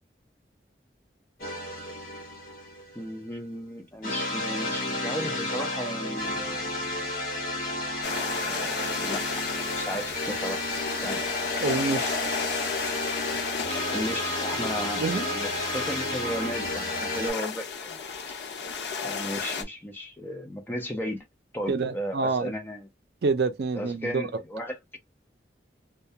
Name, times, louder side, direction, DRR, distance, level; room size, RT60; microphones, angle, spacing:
sound 1, 1.4-3.1 4.0-17.3, left 1 dB, 50° left, 1.1 m, -32 dB
voice 1, 2.9-7.1 8.4-9.5 9.7-10.6 10.9-11.3 13.7-18.0 19.0-21.2 21.5-22.9 23.8-25.0, equal, 10° left, 0.6 m, -35 dB
sound 2, 8.0-19.6, left 5 dB, 80° left, 0.6 m, -33 dB
voice 2, 11.6-12.1 15.0-15.3 21.7-22.5 23.2-24.3, right 4 dB, 65° right, 0.4 m, -27 dB
2.2 x 2.2 x 2.7 m
head